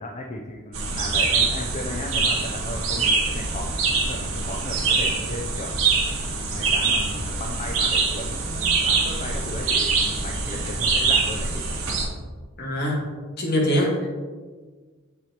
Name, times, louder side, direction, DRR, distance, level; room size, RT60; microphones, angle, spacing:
voice 1, 0.0-5.8 6.5-11.6, left 1 dB, 30° left, 2 dB, 0.5 m, -35 dB
sound 1, 0.7-12.0, right 4 dB, 75° right, 1.3 m, -24 dB
sound 2, 4.7-5.0 5.8-5.9 6.6-6.9 7.8-8.1 9.0-9.5 10.6-10.9 11.9-12.2, right 1 dB, 60° right, 2.1 m, -40 dB
voice 2, 12.6-13.0 13.4-14.1, equal, 50° left, -2 dB, 1.6 m, -23 dB
7.9 x 5.9 x 2.9 m, 1.4 s
head